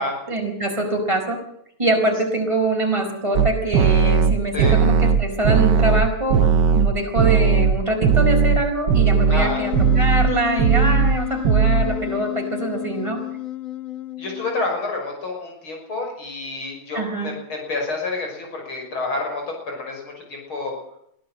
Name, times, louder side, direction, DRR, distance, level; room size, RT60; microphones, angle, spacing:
voice 1, 0.3-1.4 1.8-13.2 16.9-17.3, right 1 dB, 15° right, 2 dB, 4.9 m, -24 dB
sound 1, 3.4-8.6 8.9-9.5 9.7-10.3 10.6-11.2 11.5-11.9, right 6 dB, 60° right, 1.6 m, -17 dB
voice 2, 9.3-9.6 14.2-20.7, left 2 dB, 85° left, 2 dB, 6.8 m, -28 dB
Wind instrument woodwind instrument, 9.4-14.8, left 15 dB, 45° left, 1.4 m, -30 dB
22.5 x 15.0 x 7.7 m, 0.74 s
omnidirectional pair, 2.2 m